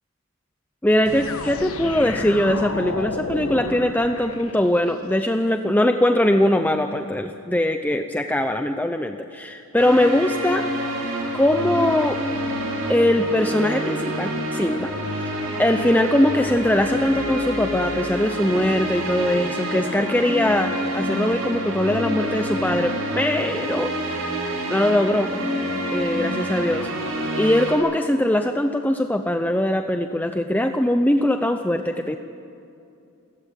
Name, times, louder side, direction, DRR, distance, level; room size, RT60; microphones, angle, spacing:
voice 1, 0.8-10.7 11.3-12.2 12.9-14.9 15.2-15.3 15.6-23.9 24.2-24.4 24.7-25.3 25.9-26.9 27.4-32.2, left 1 dB, 10° left, 6 dB, 0.7 m, -21 dB
sound 1, 1.1-5.0, left 3 dB, 70° left, 1.4 m, -32 dB
sound 2, 9.8-27.7, equal, 65° right, 5.8 m, -27 dB
29.0 x 16.0 x 9.1 m, 2.7 s
head